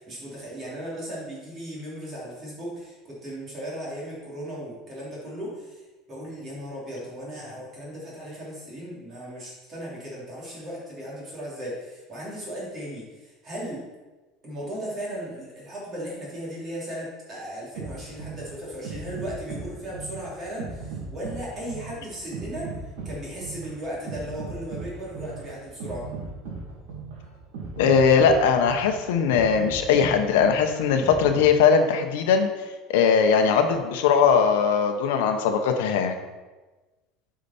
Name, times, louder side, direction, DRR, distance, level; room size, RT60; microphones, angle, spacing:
voice 1, 0.0-13.9 14.4-26.1, equal, 30° right, -6 dB, 2.7 m, -36 dB
sound 1, 17.7-31.4, right 4 dB, 85° right, 2.2 m, -37 dB
voice 2, 27.8-32.5 32.9-36.2, left 6 dB, 90° left, 6 dB, 0.9 m, -20 dB
8.7 x 4.9 x 4.2 m, 1.2 s
cardioid pair, 155°, 0 cm